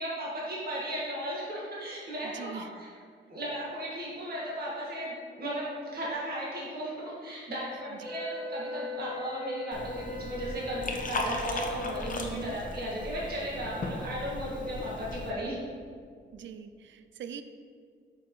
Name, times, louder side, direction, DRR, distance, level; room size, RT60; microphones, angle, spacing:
voice 1, 0.0-2.9 3.3-15.6, equal, 55° right, -6 dB, 1.8 m, -36 dB
voice 2, 2.2-2.7 8.0-8.1 12.2-12.6 16.3-17.4, right 7 dB, 80° right, 9 dB, 0.5 m, -42 dB
sound 1, 8.0-11.9, left 1 dB, 5° right, 1.7 m, -41 dB
Liquid, 9.7-15.3, left 2 dB, 45° left, 0.9 m, -37 dB
8.8 x 6.3 x 3.1 m, 2.1 s
cardioid pair, 110°, 19 cm